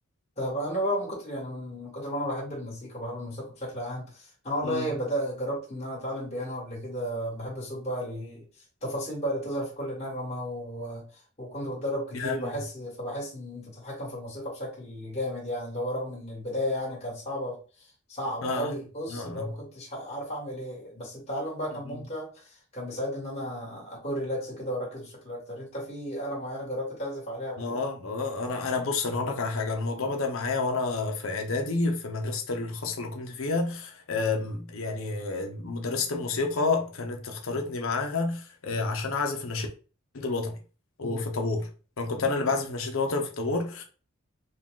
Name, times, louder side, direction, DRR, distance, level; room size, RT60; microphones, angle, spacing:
voice 1, 0.4-8.4 8.8-11.0 11.4-27.8 41.0-41.2, equal, 30° left, 1.8 m, -33 dB
voice 2, 12.1-12.5 18.4-18.7 19.1-19.5 21.9-22.0 27.6-39.7 40.1-40.6 41.0-41.7 42.0-43.8, left 3 dB, 65° left, 0.8 m, -29 dB
3.9 x 2.4 x 3.7 m
head